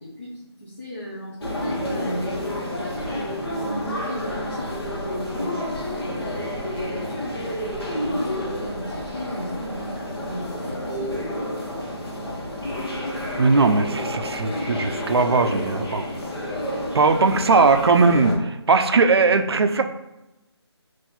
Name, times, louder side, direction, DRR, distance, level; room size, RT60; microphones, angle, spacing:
voice 1, 0.0-7.4 8.1-11.3, equal, 25° left, -8 dB, 0.5 m, -35 dB
sound 1, 1.4-18.4, left 1 dB, 55° left, 1.1 m, -30 dB
voice 2, 13.4-16.1 16.9-19.8, right 4 dB, 60° right, 8 dB, 0.4 m, -19 dB
3.8 x 2.5 x 4.1 m, 0.95 s
figure-of-eight pair, 180°, 15 cm